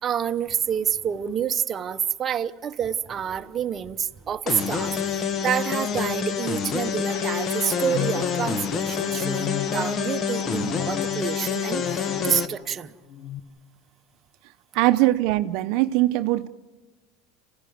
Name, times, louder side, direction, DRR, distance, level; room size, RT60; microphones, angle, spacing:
voice 1, 0.0-12.9, right 8 dB, 30° right, 0.8 m, -28 dB
sound 1, 4.5-12.5, left 6 dB, 40° left, 1.2 m, -27 dB
sound 2, 7.1-12.8 13.1-13.4, left 10 dB, 80° left, 1.3 m, -35 dB
voice 2, 14.7-16.5, right 17 dB, 65° right, 0.7 m, -21 dB
26.5 x 16.0 x 9.4 m
supercardioid pair, 120°, 0 cm